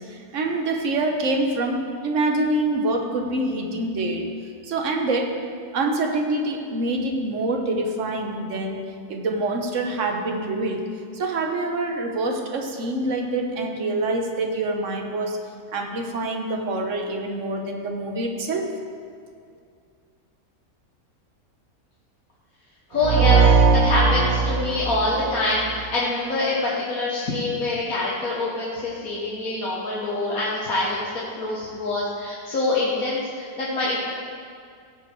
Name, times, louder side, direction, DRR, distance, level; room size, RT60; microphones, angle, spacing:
voice 1, 0.1-4.3 4.6-5.4 5.7-8.8 9.1-10.8 11.1-15.4 15.7-18.7, right 2 dB, 55° right, 3 dB, 1.3 m, -25 dB
voice 2, 22.9-31.1 31.4-34.0, left 2 dB, 60° left, -7 dB, 1.8 m, -25 dB
sound 1, 23.0-25.8, right 4 dB, 70° right, 1.0 m, -19 dB
16.0 x 5.5 x 4.7 m, 2.2 s
omnidirectional pair, 1.7 m